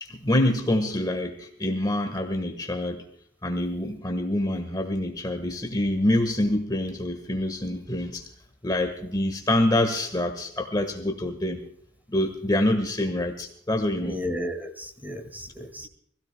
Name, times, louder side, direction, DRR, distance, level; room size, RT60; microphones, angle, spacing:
voice 1, 0.0-3.0 3.4-8.3 8.6-11.6 12.1-14.2, left 1 dB, 20° left, 5 dB, 1.5 m, -26 dB
voice 2, 14.0-15.9, left 1 dB, 10° right, 5 dB, 2.1 m, -33 dB
25.5 x 16.5 x 2.3 m, 0.64 s
head